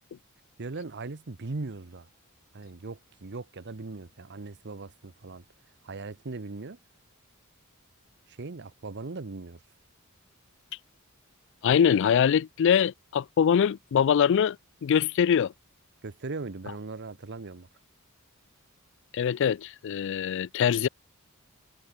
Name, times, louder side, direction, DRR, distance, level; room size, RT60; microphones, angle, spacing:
voice 1, 0.6-2.1 2.5-5.4 5.8-6.8 8.3-9.6 16.0-17.7, right 3 dB, 55° right, 0.9 m, -39 dB
voice 2, 11.6-14.6 14.8-15.5 19.1-20.9, left 8 dB, 60° left, 0.3 m, -23 dB
head